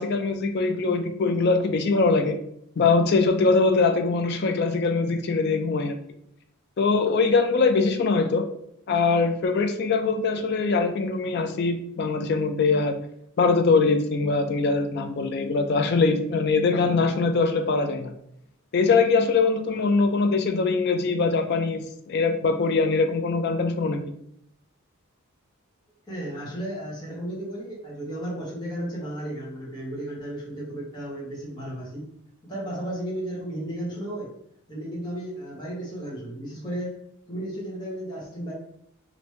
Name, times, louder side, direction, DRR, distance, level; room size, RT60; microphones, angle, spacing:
voice 1, 0.0-2.4 2.8-5.9 6.8-8.4 8.9-13.0 13.4-18.1 18.7-24.0, left 4 dB, 50° left, 6 dB, 0.3 m, -22 dB
voice 2, 26.1-32.1 32.5-34.3 34.7-36.9 37.3-38.5, right 1 dB, 20° left, -6 dB, 0.9 m, -34 dB
3.1 x 2.5 x 3.1 m, 0.73 s
head